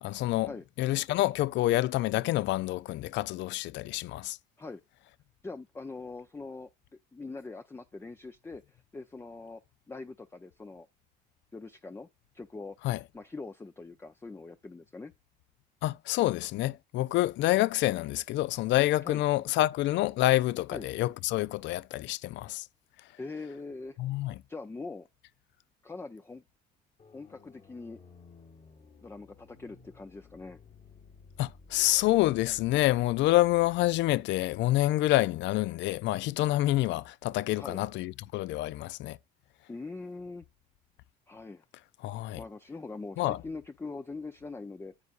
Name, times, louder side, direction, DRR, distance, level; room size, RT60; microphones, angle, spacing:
voice 1, 0.0-0.5 0.8-4.4 12.8-13.0 15.8-22.6 24.0-24.3 31.4-39.2 42.0-42.4 43.2-43.4, left 16 dB, 70° left, 0.4 m, -27 dB
voice 2, 5.4-6.7 7.1-9.6 9.9-10.9 11.5-12.1 12.3-12.8 13.1-15.1 19.0-19.2 20.7-20.9 23.2-24.0 24.5-25.1 25.8-26.4 27.1-28.0 29.0-30.6 37.6-37.8 39.7-40.4 41.3-41.6 42.4-44.9, left 3 dB, 10° left, 0.5 m, -42 dB
sound 1, 27.0-34.0, left 4 dB, 40° left, 1.5 m, -55 dB
9.8 x 8.1 x 2.4 m
cardioid pair, 100°, 20 cm